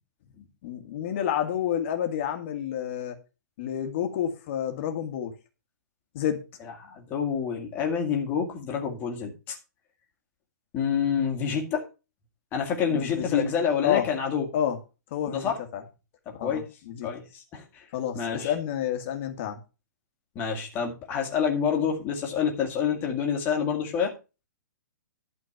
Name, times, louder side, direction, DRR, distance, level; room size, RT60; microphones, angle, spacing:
voice 1, 0.6-3.2 3.6-5.3 6.1-6.4 12.9-13.4 13.8-14.0 14.5-14.8 15.1-15.8 16.3-17.1 17.9-19.6, left 10 dB, 35° left, 1.8 m, -29 dB
voice 2, 6.6-9.6 10.7-11.9 12.5-14.5 15.3-15.6 16.4-16.6 17.0-17.9 18.1-18.5 20.4-24.1, left 7 dB, 20° left, 2.1 m, -28 dB
12.0 x 4.5 x 7.0 m
hypercardioid pair, 165°, 11 cm